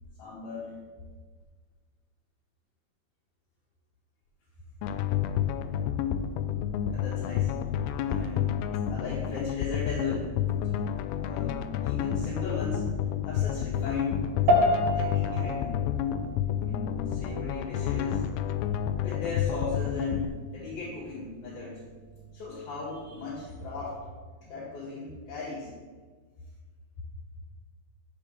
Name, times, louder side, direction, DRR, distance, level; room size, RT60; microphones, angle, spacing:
voice 1, 0.2-0.7 6.9-7.6 8.1-8.6 8.9-12.8 13.2-14.4 14.9-15.8 16.6-18.2 19.0-21.8 22.3-24.1 24.4-25.7, left 3 dB, 65° left, -8 dB, 3.8 m, -37 dB
sound 1, 4.8-20.3, left 10 dB, 85° left, 2.1 m, -30 dB
sound 2, 14.5-24.1, equal, 80° right, 1.8 m, -32 dB
8.2 x 5.1 x 6.6 m, 1.4 s
omnidirectional pair, 4.8 m